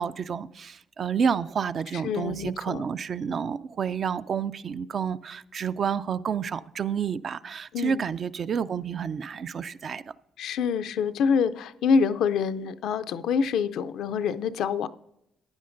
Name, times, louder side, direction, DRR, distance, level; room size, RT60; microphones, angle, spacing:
voice 1, 0.0-10.1, right 7 dB, 50° right, 0.4 m, -29 dB
voice 2, 1.9-2.9 7.7-8.0 10.4-14.9, left 6 dB, 80° left, 0.4 m, -26 dB
15.0 x 10.5 x 2.6 m
cardioid pair, 90°, 0 cm